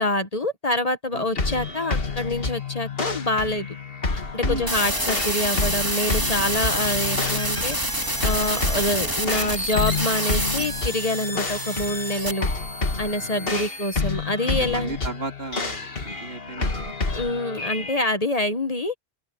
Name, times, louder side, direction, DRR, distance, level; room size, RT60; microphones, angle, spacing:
voice 1, 0.0-3.7 4.1-7.8 8.2-12.5 13.0-15.0 17.1-19.0, left 1 dB, 35° left, 1.3 m, -26 dB
sound 1, 1.3-18.1, left 4 dB, 60° left, 2.1 m, -29 dB
voice 2, 4.4-4.7 13.2-13.7 14.4-16.9, right 3 dB, 65° right, 2.8 m, -35 dB
sound 2, 4.7-14.0, right 1 dB, 20° right, 2.6 m, -28 dB
open air
omnidirectional pair, 1.1 m